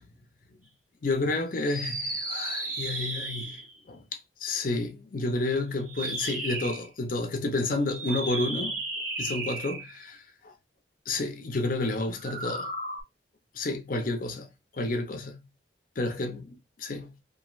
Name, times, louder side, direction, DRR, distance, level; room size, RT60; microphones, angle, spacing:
voice 1, 1.0-8.8 9.2-10.5 11.1-12.7 13.5-14.5 14.7-15.4 16.0-17.1, left 2 dB, 50° left, 0.5 m, -30 dB
sound 1, 1.6-3.8 5.8-6.9 7.9-10.0 12.1-13.0, right 2 dB, 45° right, 1.1 m, -34 dB
3.0 x 2.5 x 2.4 m
head